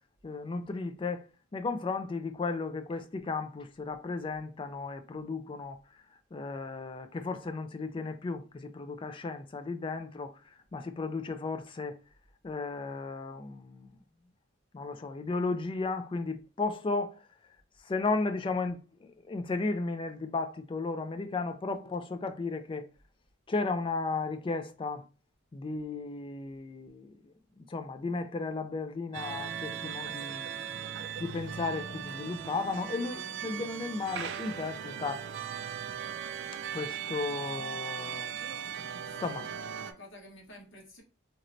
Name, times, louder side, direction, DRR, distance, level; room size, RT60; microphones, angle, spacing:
voice 1, 0.2-1.2 1.5-5.8 6.3-10.3 10.7-12.0 12.4-14.0 14.7-17.2 17.8-22.9 23.5-25.0 25.5-30.5 31.2-35.3 36.7-38.3 39.2-39.4, left 3 dB, 25° left, 0.3 m, -34 dB
sound 1, 29.1-39.9, right 8 dB, 60° right, 0.3 m, -38 dB
voice 2, 39.0-41.0, left 1 dB, 70° left, 1.2 m, -52 dB
3.1 x 2.9 x 2.6 m
head